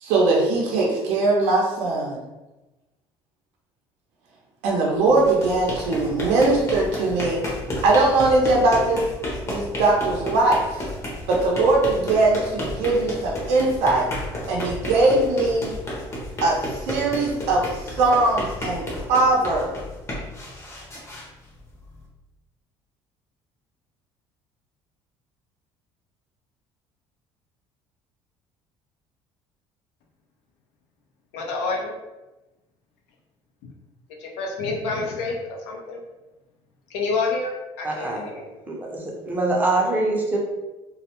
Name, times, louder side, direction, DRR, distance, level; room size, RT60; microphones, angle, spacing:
voice 1, 0.0-2.2 4.6-7.4 7.8-9.0 9.5-10.8 11.3-14.1 14.5-15.7 16.4-19.7, right 2 dB, 90° right, -2 dB, 0.5 m, -20 dB
sound 1, 5.0-22.0, left 1 dB, 25° left, 0.6 m, -32 dB
voice 2, 31.3-31.9 34.2-35.4 35.7-36.0 36.9-38.5, left 3 dB, 90° left, 0 dB, 0.5 m, -28 dB
voice 3, 37.8-38.2 38.7-38.9 39.2-40.4, right 2 dB, 15° right, -1 dB, 0.5 m, -23 dB
2.3 x 2.0 x 2.8 m, 1.1 s
cardioid pair, 150°, 10 cm